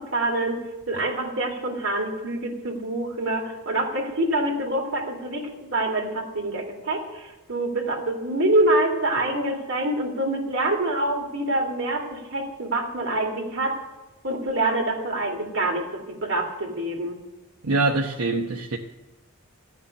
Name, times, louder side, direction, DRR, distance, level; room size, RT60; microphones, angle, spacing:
voice 1, 0.0-13.8 14.2-17.2, right 1 dB, 60° right, 1 dB, 2.9 m, -26 dB
voice 2, 17.6-18.8, right 3 dB, 80° right, 0 dB, 1.0 m, -24 dB
14.5 x 6.7 x 9.9 m, 1.1 s
head